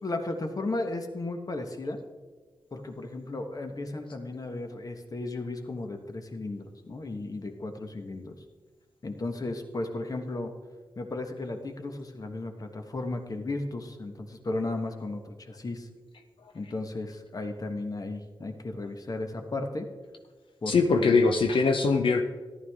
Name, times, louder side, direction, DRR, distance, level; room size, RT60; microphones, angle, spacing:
voice 1, 0.0-2.0 2.7-8.4 9.0-10.5 10.9-15.9 16.5-19.9 20.6-21.2, left 2 dB, 45° left, 6 dB, 1.3 m, -35 dB
voice 2, 20.7-22.2, left 4 dB, 80° left, 5 dB, 0.7 m, -22 dB
14.0 x 11.5 x 3.6 m, 1.5 s
wide cardioid pair, 80°, 9 cm